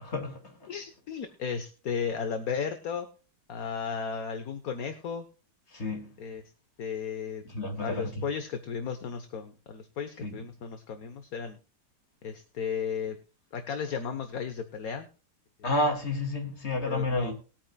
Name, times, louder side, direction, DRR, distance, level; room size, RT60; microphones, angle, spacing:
voice 1, 0.0-0.7 5.7-6.1 7.4-8.2 10.2-10.4 15.6-17.3, left 2 dB, 40° left, 2.7 m, -31 dB
voice 2, 0.7-3.1 3.5-5.2 6.2-6.4 6.8-7.4 7.8-11.6 12.2-13.2 13.5-15.1 16.8-17.3, left 6 dB, 60° left, 1.5 m, -34 dB
20.5 x 8.9 x 2.3 m
omnidirectional pair, 1.8 m